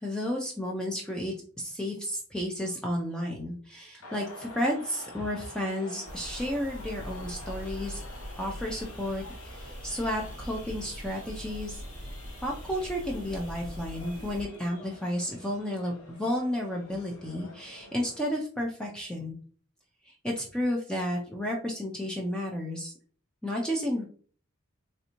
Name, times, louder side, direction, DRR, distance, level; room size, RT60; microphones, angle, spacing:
voice 1, 0.0-8.0 8.4-11.8 12.4-19.4 20.0-22.9 23.4-24.1, equal, 5° left, -1 dB, 0.4 m, -32 dB
sound 1, 4.0-18.2, left 2 dB, 75° left, 0.8 m, -48 dB
sound 2, 6.1-14.4, equal, 40° right, 0.6 m, -42 dB
3.3 x 2.7 x 2.9 m, 0.44 s
head